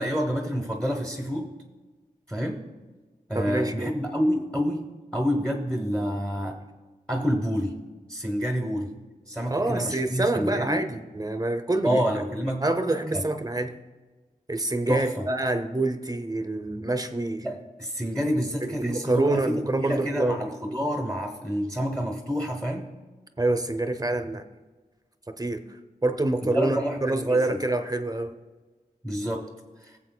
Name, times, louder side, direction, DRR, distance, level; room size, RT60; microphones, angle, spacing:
voice 1, 0.0-1.5 2.3-2.6 3.3-6.6 7.1-7.8 8.1-8.9 9.3-10.8 11.8-12.6 13.1-13.3 14.9-15.3 17.4-22.9 26.4-27.7 29.0-29.5 29.8-29.9, equal, 5° left, 1 dB, 1.0 m, -28 dB
voice 2, 3.3-3.9 9.5-12.0 12.6-13.8 14.5-17.5 18.6-20.4 23.4-24.4 25.4-25.6 26.0-28.3, right 2 dB, 25° right, 8 dB, 0.7 m, -26 dB
19.0 x 7.4 x 2.2 m, 1.3 s
wide cardioid pair, 50°, 15 cm